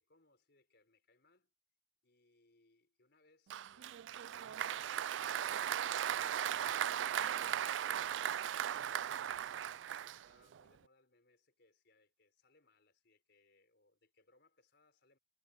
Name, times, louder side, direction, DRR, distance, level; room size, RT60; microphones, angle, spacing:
voice 1, 0.1-1.5 2.0-8.5 8.8-15.2, left 2 dB, 65° left, 5.1 m, -72 dB
Applause, 3.5-10.6, right 10 dB, 75° right, 0.3 m, -37 dB
head